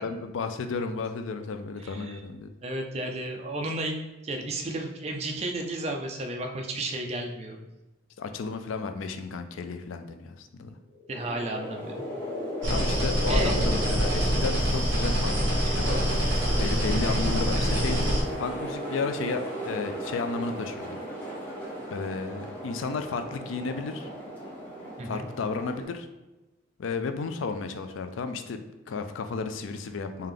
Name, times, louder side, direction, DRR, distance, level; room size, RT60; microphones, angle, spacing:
voice 1, 0.0-2.5 8.2-10.7 12.7-16.1 16.6-18.1 18.4-21.0 21.9-24.1 25.0-26.1 26.8-28.6 28.9-30.3, left 4 dB, 75° left, 8 dB, 0.4 m, -33 dB
voice 2, 1.8-2.2 2.6-4.0 4.2-7.6 11.1-12.0 13.3-13.5 17.1-17.2 25.0-25.3, right 2 dB, 30° right, 3 dB, 0.4 m, -33 dB
sound 1, 10.9-15.3, left 1 dB, 35° left, 1.4 m, -36 dB
sound 2, 11.1-25.8, right 1 dB, 10° left, 1.0 m, -37 dB
sound 3, 12.6-18.2, equal, 60° right, 1.0 m, -25 dB
3.4 x 2.8 x 3.7 m, 1.0 s
head